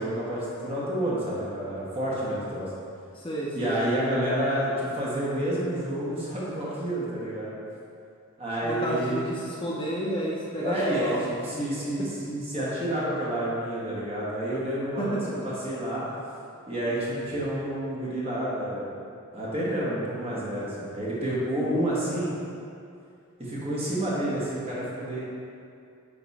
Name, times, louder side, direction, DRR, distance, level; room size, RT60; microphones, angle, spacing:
voice 1, 0.0-2.7 3.5-7.5 8.4-9.2 10.6-16.0 16.7-18.9 19.3-22.3 23.4-25.2, right 1 dB, 25° right, -7 dB, 1.3 m, -29 dB
voice 2, 3.1-3.8 8.6-11.2 12.0-12.1 15.0-15.3, equal, 25° left, -5 dB, 0.6 m, -31 dB
8.4 x 3.0 x 4.1 m, 2.5 s
head